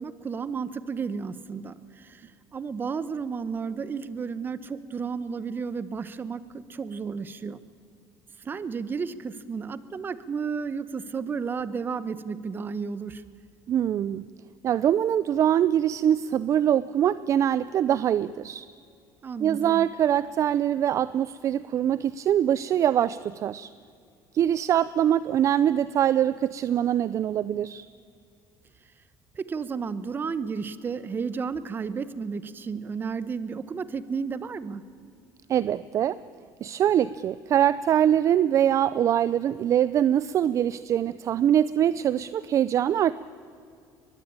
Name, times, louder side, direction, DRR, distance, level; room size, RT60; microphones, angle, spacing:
voice 1, 0.0-7.6 8.4-13.2 19.2-19.9 29.3-34.9, right 5 dB, 25° right, 15 dB, 1.1 m, -32 dB
voice 2, 13.7-14.3 14.6-18.7 19.4-23.7 24.3-27.9 35.5-36.2 36.6-43.1, right 10 dB, 40° right, 17 dB, 0.5 m, -23 dB
22.5 x 21.0 x 8.9 m, 2.4 s
cardioid pair, 130°, 8 cm